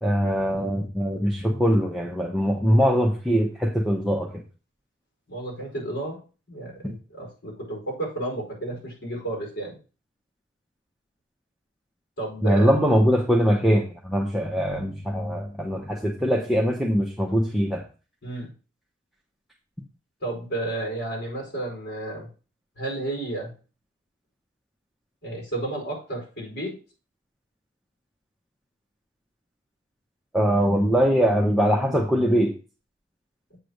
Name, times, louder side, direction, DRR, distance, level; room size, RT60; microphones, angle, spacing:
voice 1, 0.0-4.3 6.8-6.9 12.4-17.8 30.3-32.5, equal, ahead, -2 dB, 0.8 m, -22 dB
voice 2, 5.3-6.2 6.5-9.7 12.2-12.8 18.2-18.5 20.2-22.3 22.8-23.5 25.2-26.7, right 2 dB, 75° left, -2 dB, 4.9 m, -32 dB
7.9 x 3.4 x 6.4 m, 0.35 s
head